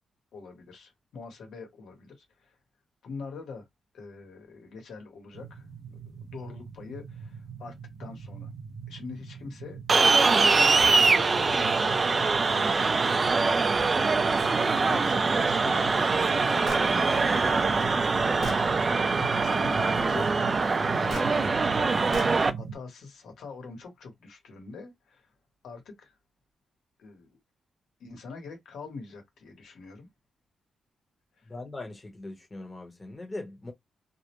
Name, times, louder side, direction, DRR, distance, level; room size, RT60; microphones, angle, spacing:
voice 1, 0.3-2.6 3.0-3.6 3.9-7.7 8.0-8.5 8.9-12.9 13.4-17.9 19.2-22.2 22.5-25.3 25.6-26.1 27.0-27.4 28.0-30.1 31.4-31.5, left 4 dB, 80° left, 1.1 m, -44 dB
sound 1, 5.3-22.8, right 6 dB, 65° right, 0.7 m, -40 dB
sound 2, 9.9-22.5, right 4 dB, 30° right, 0.3 m, -23 dB
Gunshot gunfire, 16.6-16.9 17.8-17.9 18.4-18.7 21.1-21.3 22.1-22.4, left 4 dB, 60° left, 0.5 m, -38 dB
voice 2, 31.4-33.7, left 2 dB, 20° left, 0.9 m, -40 dB
2.4 x 2.1 x 2.9 m
cardioid pair, 135°, 0 cm